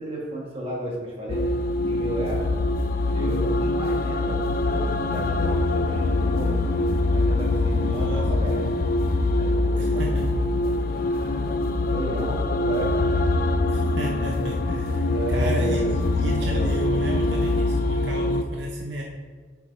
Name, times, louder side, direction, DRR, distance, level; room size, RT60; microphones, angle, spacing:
voice 1, 0.0-1.5 1.8-2.5 3.1-6.6 7.1-8.6 9.4-10.0 10.3-13.2 15.1-15.9 16.4-16.8, right 1 dB, 30° right, -3 dB, 1.5 m, -34 dB
sound 1, 1.3-18.4, left 2 dB, 50° left, 0.4 m, -23 dB
voice 2, 7.8-8.3 9.8-10.3 13.7-15.8 16.2-19.0, right 1 dB, 65° right, -1 dB, 0.8 m, -32 dB
8.0 x 5.8 x 3.2 m, 1.5 s
head